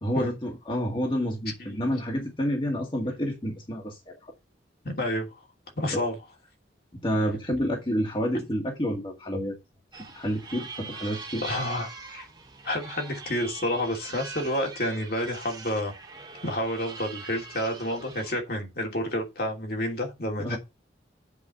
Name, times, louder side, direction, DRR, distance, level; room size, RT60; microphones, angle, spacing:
voice 1, 0.0-4.3 5.9-6.0 6.9-9.6 10.1-11.4 20.4-20.6, equal, 25° left, 2.0 m, -29 dB
voice 2, 4.8-5.3 5.8-6.1 11.4-12.3 12.6-15.9 16.4-20.6, left 1 dB, 55° left, 2.9 m, -29 dB
sound 1, 9.9-18.4, right 4 dB, 25° right, 1.7 m, -42 dB
8.2 x 4.9 x 6.8 m
head